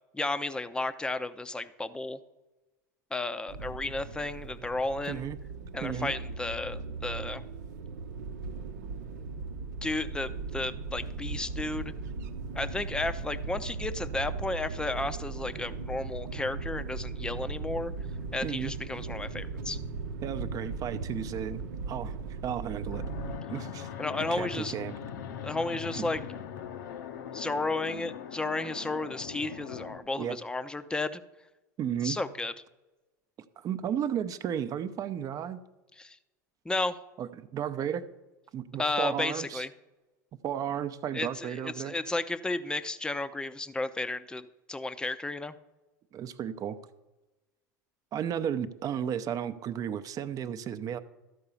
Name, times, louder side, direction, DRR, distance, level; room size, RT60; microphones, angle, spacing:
voice 1, 0.1-2.2 3.1-5.3 5.7-7.4 9.8-11.9 12.5-17.9 18.3-19.8 24.0-24.7 25.4-26.2 27.3-31.2 32.0-32.5 36.0-36.2 36.6-36.9 38.8-39.7 41.1-45.5, left 2 dB, 10° left, 12 dB, 0.6 m, -33 dB
sound 1, 3.5-23.4, right 4 dB, 65° right, 0.8 m, -38 dB
voice 2, 5.1-5.4 5.8-6.1 18.4-18.7 20.2-23.0 23.5-23.9 24.3-24.9 26.0-26.1 30.2-30.4 31.8-32.2 33.6-35.6 37.2-38.0 38.5-39.6 40.4-42.0 46.1-46.8 48.1-51.0, right 9 dB, 35° right, 11 dB, 0.7 m, -33 dB
Fixed-wing aircraft airplane, 22.9-30.0, left 8 dB, 70° left, 0.8 m, -40 dB
13.0 x 4.8 x 7.0 m, 1.1 s
hypercardioid pair, 90°, 10 cm